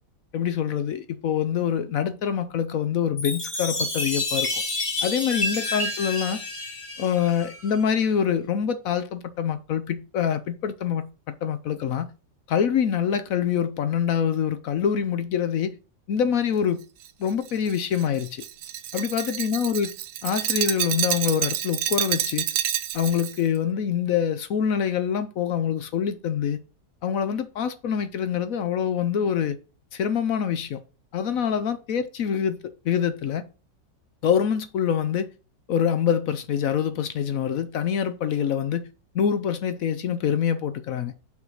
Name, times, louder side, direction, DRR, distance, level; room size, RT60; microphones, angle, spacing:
voice 1, 0.3-4.6 5.0-6.4 7.0-12.1 12.5-15.7 16.1-16.8 17.2-18.4 18.9-20.0 20.2-22.5 22.9-26.6 27.0-29.6 29.9-30.8 31.1-33.4 34.2-35.3 35.7-38.9 39.1-41.1, left 8 dB, 65° left, 0.9 m, -25 dB
Chime, 3.2-7.8, left 2 dB, 20° left, 1.2 m, -29 dB
Glass, 17.0-23.4, right 11 dB, 75° right, 1.2 m, -28 dB
5.6 x 4.6 x 6.3 m
omnidirectional pair, 1.9 m